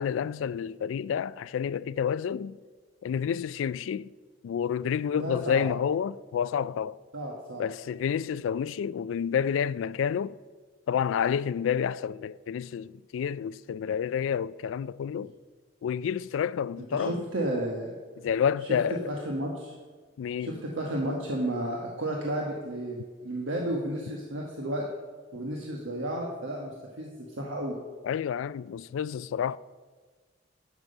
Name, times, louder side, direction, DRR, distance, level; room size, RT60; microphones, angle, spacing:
voice 1, 0.0-2.6 3.0-4.1 4.4-7.0 7.6-10.3 10.9-15.3 15.8-17.2 18.2-19.0 20.2-20.6 28.0-29.6, left 7 dB, 85° left, 0.3 m, -29 dB
voice 2, 5.1-5.7 7.1-7.7 16.9-18.0 19.1-19.7 20.4-24.8 25.3-27.8, right 1 dB, 85° right, 1.3 m, -32 dB
10.5 x 7.4 x 5.3 m
head